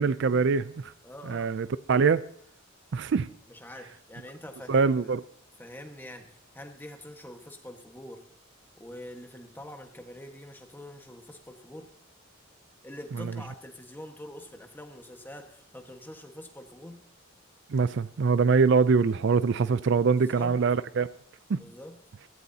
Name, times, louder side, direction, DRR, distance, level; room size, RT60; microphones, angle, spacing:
voice 1, 0.0-0.9 1.3-2.2 2.9-3.3 4.7-5.2 17.7-21.1 21.5-21.6, right 5 dB, 60° right, 0.4 m, -23 dB
voice 2, 1.0-1.5 3.5-4.9 5.6-8.2 8.8-11.9 12.8-17.0 20.1-20.6 21.6-22.0, left 1 dB, 10° left, 1.5 m, -45 dB
16.5 x 15.5 x 2.8 m
head